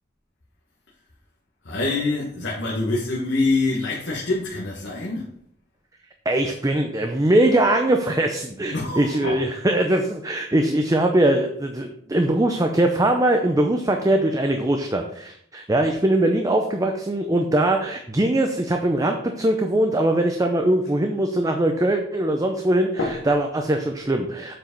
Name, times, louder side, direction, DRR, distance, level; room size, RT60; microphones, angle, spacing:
voice 1, 1.6-5.3 8.7-9.4 22.9-23.4, left 3 dB, 85° left, 1.4 m, -25 dB
voice 2, 6.3-22.9 23.3-24.6, right 1 dB, 20° right, 0.6 m, -21 dB
7.5 x 4.8 x 5.2 m
head